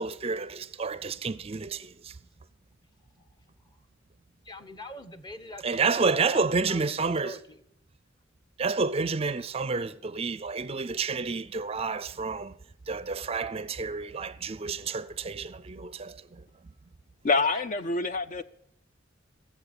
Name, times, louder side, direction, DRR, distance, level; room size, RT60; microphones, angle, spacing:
voice 1, 0.0-2.1 5.6-7.4 8.6-12.5 12.9-16.4, right 4 dB, 30° right, 0.5 m, -30 dB
voice 2, 4.4-7.6 17.5-17.6, left 1 dB, 20° left, 1.1 m, -44 dB
voice 3, 17.2-18.4, left 3 dB, 40° left, 0.5 m, -26 dB
17.5 x 7.5 x 8.8 m
head